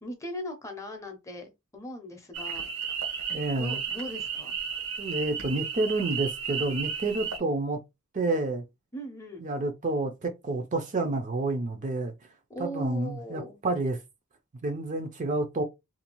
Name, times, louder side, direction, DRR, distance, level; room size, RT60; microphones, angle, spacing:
voice 1, 0.0-2.7 3.6-4.6 7.1-7.4 8.9-9.5 12.5-13.6, equal, 15° left, 0.6 m, -39 dB
sound 1, 2.3-7.4, right 7 dB, 85° right, 0.9 m, -34 dB
voice 2, 3.3-3.8 5.0-7.8 8.1-8.6 9.4-12.1 12.6-14.0 14.6-15.6, right 2 dB, 35° right, 0.4 m, -29 dB
2.6 x 2.3 x 2.9 m
head